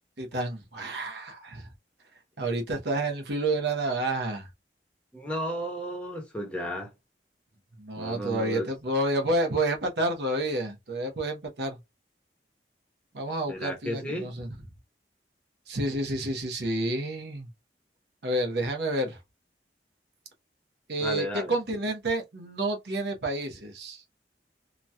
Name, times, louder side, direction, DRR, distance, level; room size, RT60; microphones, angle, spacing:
voice 1, 0.2-1.7 2.4-4.5 7.8-11.8 13.1-14.5 15.7-17.5 18.2-19.2 20.9-24.0, right 1 dB, 70° right, 0.8 m, -29 dB
voice 2, 5.1-6.9 8.0-8.7 13.5-14.3 21.0-21.5, equal, 5° left, 0.9 m, -33 dB
3.0 x 2.7 x 2.2 m
head